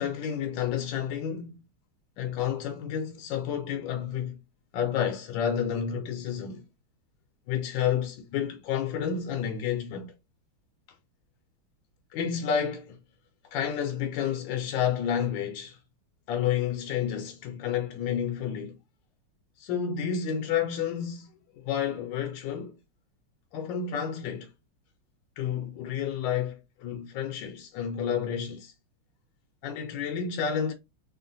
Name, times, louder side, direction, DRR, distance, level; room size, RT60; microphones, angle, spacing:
voice 1, 0.0-1.6 2.2-4.4 4.7-6.6 7.5-10.1 12.1-13.0 13.5-15.8 16.3-18.8 19.6-21.3 21.5-22.7 23.5-24.5 25.4-28.7 29.6-30.7, left 8 dB, 75° left, 1.2 m, -30 dB
3.7 x 2.1 x 2.6 m
omnidirectional pair, 2.3 m